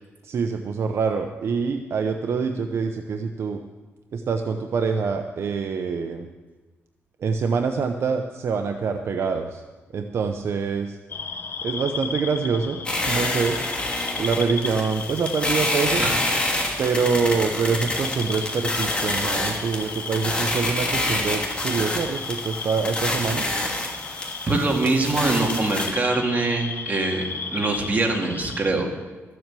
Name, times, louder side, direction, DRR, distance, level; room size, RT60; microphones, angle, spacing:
voice 1, 0.2-3.6 4.1-6.3 7.2-9.6 9.9-11.0 11.6-12.8 13.1-13.6 14.2-16.0 16.8-23.5, right 5 dB, 65° right, 6 dB, 0.7 m, -25 dB
sound 1, 11.1-28.7, left 5 dB, 50° left, 0.9 m, -35 dB
sound 2, 12.9-25.9, left 1 dB, 20° left, 2.7 m, -27 dB
voice 2, 24.5-28.9, right 3 dB, 35° right, 1 dB, 2.2 m, -23 dB
13.5 x 7.7 x 7.6 m, 1.3 s
cardioid pair, 100°, 5 cm